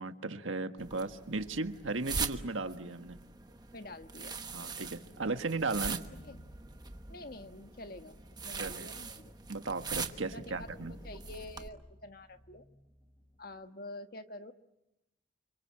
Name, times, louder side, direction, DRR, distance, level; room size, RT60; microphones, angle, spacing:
voice 1, 0.0-3.2 4.5-6.0 8.5-8.9 9.5-11.0, right 3 dB, 90° right, 7 dB, 1.6 m, -36 dB
sound 1, 0.8-11.7, right 5 dB, 20° right, 1.1 m, -42 dB
voice 2, 3.5-4.7 6.2-6.4 7.1-8.2 8.4-9.3 10.1-12.6 13.4-14.5, left 2 dB, 50° left, 7 dB, 1.4 m, -48 dB
sound 2, 4.8-13.5, equal, 25° left, 3.1 m, -57 dB
29.5 x 26.0 x 7.6 m, 0.88 s
head